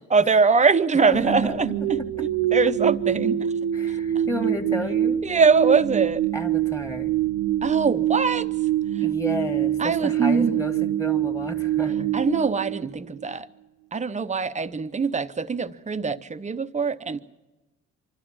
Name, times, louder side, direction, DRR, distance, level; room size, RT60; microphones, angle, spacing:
voice 1, 0.1-3.5 3.9-4.2 5.2-6.3 7.6-8.5 8.9-9.1 9.8-10.6 12.1-13.5 13.9-17.2, right 5 dB, 25° right, 0.8 m, -23 dB
voice 2, 1.1-1.5 2.0-2.3 3.7-5.2 6.3-7.1 9.0-12.1, left 1 dB, 10° left, 1.9 m, -32 dB
sound 1, 1.1-13.3, right 11 dB, 85° right, 0.9 m, -25 dB
25.5 x 12.5 x 8.7 m
cardioid pair, 90°, 30 cm